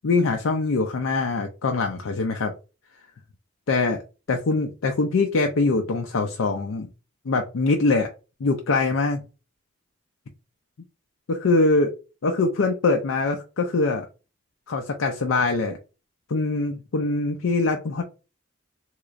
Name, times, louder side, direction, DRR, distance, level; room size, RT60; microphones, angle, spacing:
voice 1, 0.0-2.5 3.7-4.0 4.3-6.9 7.3-8.1 8.4-9.2 11.3-11.9 12.2-14.1 14.7-15.8 16.3-18.0, left 3 dB, 85° left, 4 dB, 0.5 m, -23 dB
3.6 x 3.1 x 2.4 m, 0.31 s
head